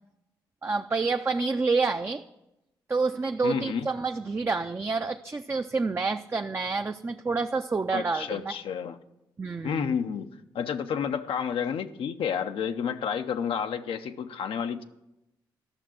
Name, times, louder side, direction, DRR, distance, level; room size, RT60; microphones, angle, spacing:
voice 1, 0.6-2.2 2.9-8.4 9.4-9.9, right 4 dB, 25° right, 6 dB, 0.5 m, -28 dB
voice 2, 3.4-3.9 7.9-9.0 9.6-14.8, left 7 dB, 70° left, 8 dB, 0.6 m, -30 dB
11.5 x 6.0 x 7.5 m, 0.92 s
supercardioid pair, 50°, 9 cm